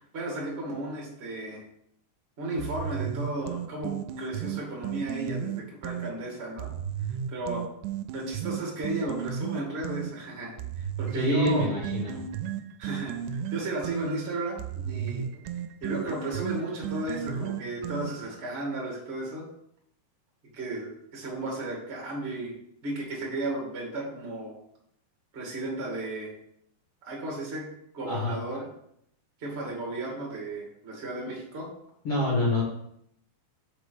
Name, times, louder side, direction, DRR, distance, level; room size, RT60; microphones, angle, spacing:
voice 1, 0.0-1.6 2.4-6.7 7.3-7.7 8.1-11.9 12.8-15.4 15.8-19.5 20.5-22.6 22.8-24.5 25.3-26.3 27.0-27.7 27.9-28.7 29.4-31.7, right 2 dB, 25° right, -3 dB, 1.4 m, -34 dB
sound 1, 2.6-6.1 6.6-10.1 10.6-18.4, right 9 dB, 85° right, 2.8 m, -34 dB
voice 2, 11.1-12.2 28.1-28.4 32.0-32.6, left 1 dB, 50° left, -6 dB, 2.0 m, -26 dB
6.0 x 5.2 x 5.1 m, 0.74 s
omnidirectional pair, 4.8 m